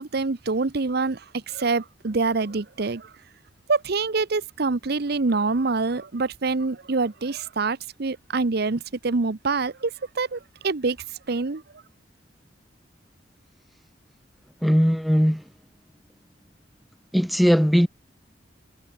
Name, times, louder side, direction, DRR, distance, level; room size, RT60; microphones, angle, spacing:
voice 1, 0.0-3.1 3.7-9.9 10.2-11.0 11.3-11.6, right 3 dB, 60° right, 0.8 m, -25 dB
voice 2, 14.6-15.4 17.1-17.9, equal, ahead, 0.3 m, -19 dB
head